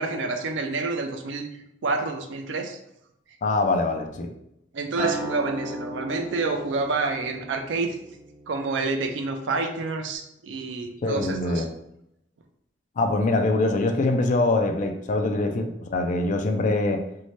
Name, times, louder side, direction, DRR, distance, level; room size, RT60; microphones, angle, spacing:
voice 1, 0.0-1.5 1.8-2.8 4.7-8.0 8.5-11.6, right 3 dB, 80° right, 6 dB, 0.4 m, -28 dB
voice 2, 3.4-4.3 11.0-11.7 13.0-17.0, left 2 dB, 45° left, 5 dB, 0.3 m, -23 dB
Acoustic guitar, 5.0-9.4 9.8-10.2, right 1 dB, 45° right, 1.0 m, -36 dB
2.6 x 2.1 x 3.0 m, 0.80 s
head